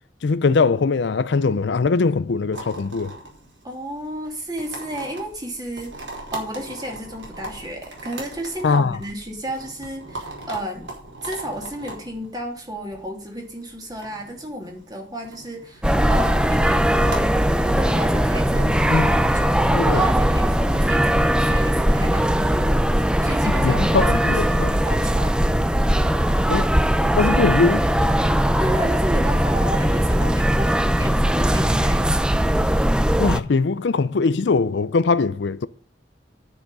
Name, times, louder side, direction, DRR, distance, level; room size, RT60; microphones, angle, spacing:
voice 1, 0.2-3.1 8.6-9.0 18.9-19.1 19.7-20.0 23.6-24.7 26.5-26.6 27.2-27.9 33.2-35.7, left 4 dB, 70° left, 0.5 m, -21 dB
sound 1, 2.5-19.7, right 2 dB, 85° right, 4.7 m, -40 dB
voice 2, 3.6-10.9 11.2-17.3 17.6-25.5 25.8-26.1 28.6-32.3, equal, 20° right, 3.0 m, -33 dB
sound 2, 15.8-33.4, equal, 5° right, 0.5 m, -19 dB
10.0 x 7.1 x 5.4 m
head